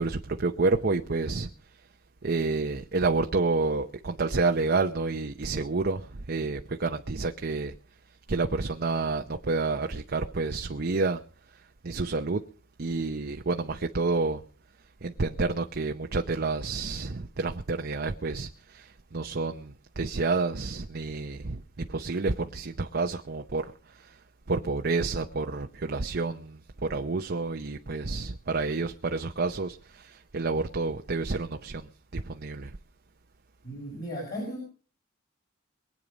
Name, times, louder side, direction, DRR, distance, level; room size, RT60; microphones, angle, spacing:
voice 1, 0.0-1.5 2.2-7.7 8.3-11.2 11.5-12.4 12.8-14.4 15.0-24.2 24.5-32.8, right 3 dB, 50° right, 0.8 m, -29 dB
voice 2, 33.6-34.6, equal, 50° left, 6.3 m, -36 dB
23.0 x 8.6 x 5.2 m
head